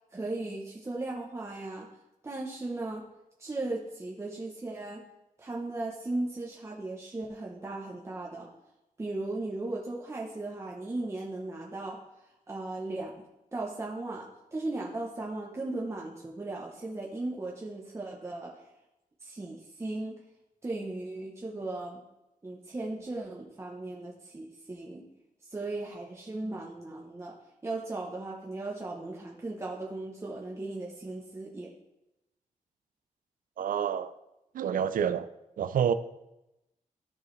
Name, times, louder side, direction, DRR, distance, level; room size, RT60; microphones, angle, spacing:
voice 1, 0.1-1.9 2.2-3.0 3.4-5.0 5.4-8.5 9.0-12.0 12.5-13.1 13.5-18.5 19.2-20.1 20.6-22.0 22.4-25.0 25.5-27.3 27.6-31.7, right 2 dB, 20° right, 0.8 m, -37 dB
voice 2, 33.6-34.1 34.5-35.3 35.6-35.9, right 8 dB, 85° right, 0.4 m, -28 dB
13.0 x 4.7 x 3.2 m
wide cardioid pair, 160°, 14 cm